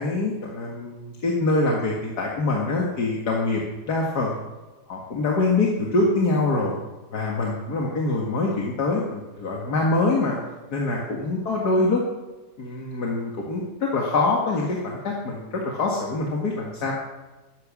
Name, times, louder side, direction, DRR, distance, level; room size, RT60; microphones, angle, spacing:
voice 1, 0.0-3.6 3.9-4.4 4.9-6.7 7.1-10.4 10.7-12.0 12.6-16.9, left 3 dB, 80° left, -2 dB, 2.4 m, -24 dB
15.0 x 12.0 x 7.4 m, 1.2 s
omnidirectional pair, 1.7 m